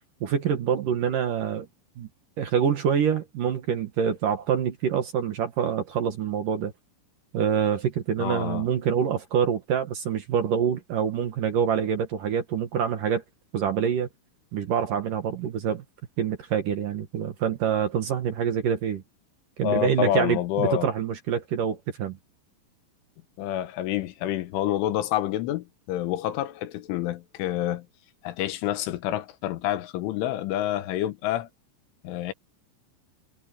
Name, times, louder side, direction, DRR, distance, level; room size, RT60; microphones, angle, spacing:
voice 1, 0.2-1.7 2.0-2.1 2.4-6.7 7.3-13.2 13.5-14.1 14.5-15.8 16.2-19.0 19.6-22.2, right 8 dB, 60° right, 2.5 m, -26 dB
voice 2, 8.2-8.7 19.6-20.9 23.4-27.9 28.2-31.5 32.0-32.3, left 13 dB, 85° left, 3.8 m, -28 dB
omnidirectional pair, 5.4 m